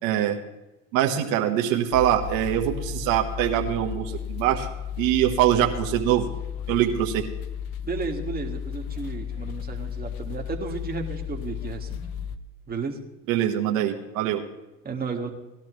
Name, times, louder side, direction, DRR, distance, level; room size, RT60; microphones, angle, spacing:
voice 1, 0.0-0.4 0.9-4.7 5.0-6.3 6.7-7.2 13.3-14.4, right 11 dB, 80° right, 3 dB, 1.2 m, -23 dB
sound 1, 1.9-12.4, left 8 dB, 60° left, 0.8 m, -34 dB
voice 2, 7.8-12.0 12.7-13.0 14.8-15.3, right 4 dB, 20° right, 1 dB, 1.8 m, -33 dB
19.0 x 11.5 x 3.1 m, 1.0 s
supercardioid pair, 95°, 41 cm